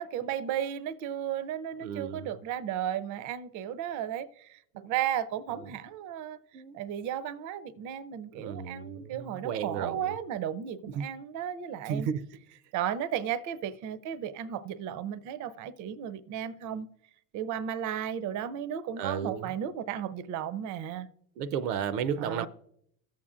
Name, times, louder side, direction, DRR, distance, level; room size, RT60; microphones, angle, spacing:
voice 1, 0.0-6.4 6.7-12.1 12.7-16.9 17.3-21.1 22.2-22.5, right 9 dB, 40° right, 0.6 m, -34 dB
voice 2, 1.8-2.4 4.7-4.9 5.6-5.7 6.5-6.7 8.3-10.1 10.9-11.1 11.9-12.3 19.0-19.5 21.4-22.5, right 7 dB, 80° right, 0.7 m, -33 dB
16.5 x 7.3 x 2.5 m
supercardioid pair, 100°, 47 cm